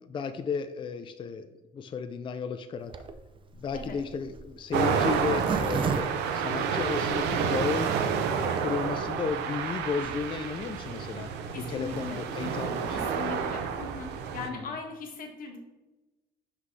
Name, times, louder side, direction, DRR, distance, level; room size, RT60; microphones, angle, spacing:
voice 1, 0.1-1.5 1.7-2.9 3.5-7.9 8.3-11.3 11.5-13.1 14.4-14.7, left 5 dB, 30° left, 9 dB, 0.4 m, -33 dB
Zipper (clothing), 2.9-7.2 7.7-7.8 8.0-8.1 8.3-8.6, right 5 dB, 30° right, 0.5 m, -33 dB
sound 1, 4.7-14.5, right 6 dB, 85° right, 0.6 m, -30 dB
voice 2, 11.5-12.2 12.9-15.6, left 4 dB, 55° left, 1 dB, 1.5 m, -39 dB
5.9 x 5.6 x 3.2 m, 1.1 s
cardioid pair, 110°, 17 cm